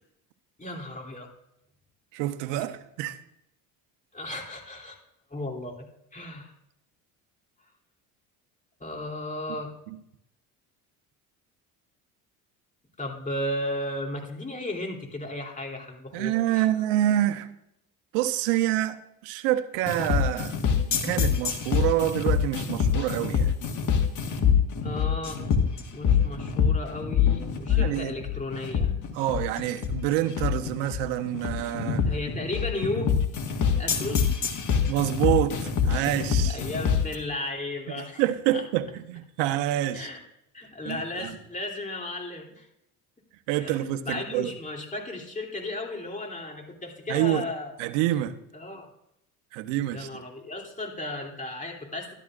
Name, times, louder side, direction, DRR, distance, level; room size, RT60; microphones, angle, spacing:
voice 1, 0.6-1.3 2.6-2.7 4.1-5.0 5.3-5.9 6.1-6.5 8.8-9.7 13.0-16.7 24.8-25.5 25.9-28.9 32.0-33.2 33.8-34.4 36.5-38.2 38.5-38.6 39.9-40.2 40.5-42.7 43.6-43.8 44.0-47.7 48.5-48.9 49.9-52.1, left 2 dB, 20° left, 2.9 m, -35 dB
voice 2, 2.1-3.2 16.1-17.5 18.1-20.6 21.0-23.5 27.7-28.1 29.1-32.1 34.9-36.6 38.2-40.1 40.8-41.4 43.5-44.5 47.1-47.5 47.8-48.4 49.5-50.2, right 13 dB, 75° right, 0.9 m, -27 dB
sound 1, 19.9-37.1, left 7 dB, 45° left, 1.6 m, -25 dB
13.5 x 11.0 x 2.5 m
hypercardioid pair, 70°, 43 cm